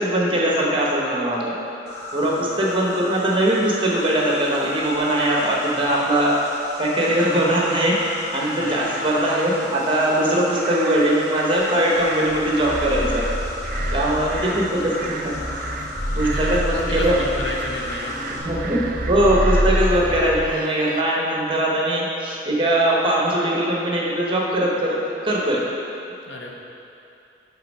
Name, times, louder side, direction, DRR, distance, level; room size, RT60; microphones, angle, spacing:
voice 1, 0.0-1.6 2.1-6.3 6.8-7.9 8.3-13.3 13.9-15.4 16.1-17.1 18.4-25.6, right 1 dB, 25° right, -4 dB, 0.8 m, -21 dB
Insect, 1.9-18.4, left 1 dB, 40° left, 1.0 m, -34 dB
voice 2, 5.7-6.1 8.6-9.1 13.7-15.0 16.2-18.3 26.3-26.5, left 1 dB, 75° left, -1 dB, 0.8 m, -34 dB
sound 1, 8.4-21.0, right 4 dB, 50° right, 0.3 m, -36 dB
sound 2, 12.2-20.5, equal, 10° left, 0.5 m, -27 dB
6.6 x 3.4 x 5.3 m, 2.8 s
head